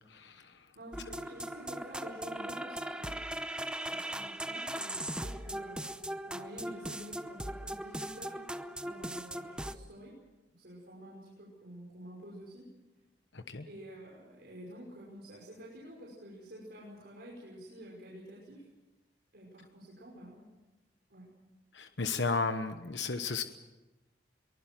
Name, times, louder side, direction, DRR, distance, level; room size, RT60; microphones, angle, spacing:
voice 1, 0.1-0.4 13.3-13.7 21.7-23.4, left 4 dB, 75° left, 8 dB, 1.2 m, -33 dB
voice 2, 0.7-3.2 3.8-8.5 8.8-10.1 10.6-12.7 13.6-18.7 19.3-20.4 21.1-21.3, equal, 60° right, -4 dB, 5.6 m, -49 dB
sound 1, 0.9-9.7, right 1 dB, 5° right, 0.8 m, -39 dB
23.0 x 20.5 x 7.6 m, 1.1 s
head